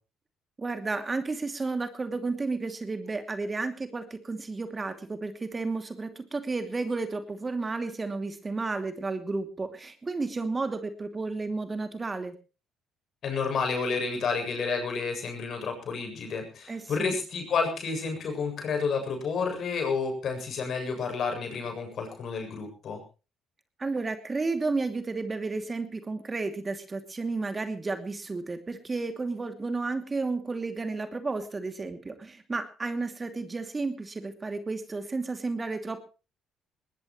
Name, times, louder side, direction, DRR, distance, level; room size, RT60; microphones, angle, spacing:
voice 1, 0.6-12.3 16.7-17.2 23.8-36.0, right 3 dB, 30° right, 8 dB, 2.6 m, -32 dB
voice 2, 13.2-23.0, left 5 dB, 60° left, 4 dB, 7.4 m, -30 dB
20.0 x 19.5 x 3.1 m, 0.34 s
hypercardioid pair, 55°, 0 cm